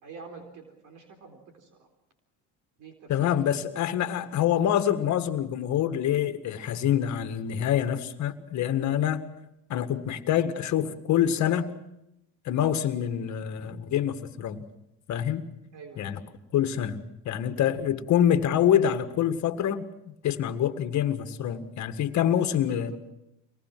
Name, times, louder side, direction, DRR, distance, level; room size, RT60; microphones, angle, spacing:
voice 1, 0.0-1.7 2.8-4.1 15.7-16.1 22.6-23.0, right 5 dB, 60° right, 4 dB, 3.9 m, -47 dB
voice 2, 3.1-9.2 9.7-11.7 12.5-14.6 15.1-15.4 16.0-16.2 16.5-23.0, left 10 dB, 55° left, 9 dB, 1.8 m, -26 dB
24.5 x 19.5 x 6.1 m, 0.87 s
supercardioid pair, 90°, 35 cm